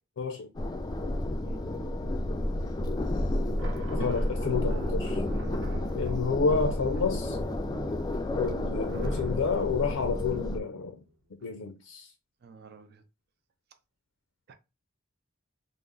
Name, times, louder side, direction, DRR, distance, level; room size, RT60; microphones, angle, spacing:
voice 1, 0.2-0.5 3.9-5.2 5.9-7.4 8.4-11.0 11.4-12.1, left 5 dB, 85° left, 0.4 m, -30 dB
sound 1, 0.5-10.6, left 1 dB, 20° left, 0.3 m, -31 dB
voice 2, 1.2-1.6 11.4-11.5 12.4-13.0 14.5-14.6, right 5 dB, 55° right, 0.4 m, -52 dB
sound 2, 3.6-11.0, right 1 dB, 80° right, 0.9 m, -42 dB
3.4 x 2.0 x 3.8 m
head